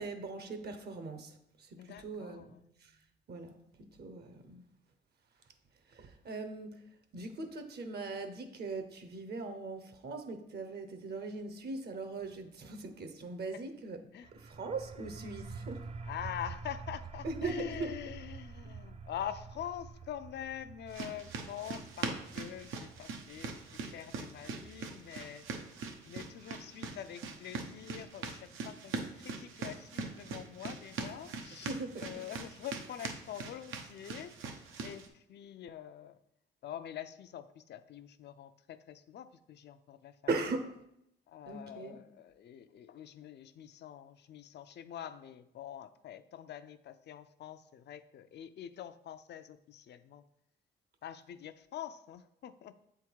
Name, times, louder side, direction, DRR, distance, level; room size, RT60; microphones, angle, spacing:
voice 1, 0.0-3.0 3.3-4.6 5.9-6.8 7.1-14.0 14.3-15.9 17.2-17.9 31.6-32.2 40.3-40.8 41.5-42.0, right 3 dB, 55° right, 0.9 m, -40 dB
voice 2, 1.8-2.7 13.5-13.6 14.1-14.3 16.0-23.6 23.9-25.5 26.0-36.2 36.6-40.1 41.3-50.2 51.0-52.7, left 10 dB, 60° left, 0.5 m, -45 dB
sound 1, 14.2-25.7, right 4 dB, 30° right, 0.5 m, -48 dB
sound 2, 20.9-35.1, right 4 dB, 85° right, 0.9 m, -42 dB
7.6 x 3.6 x 4.6 m
cardioid pair, 90°, 20 cm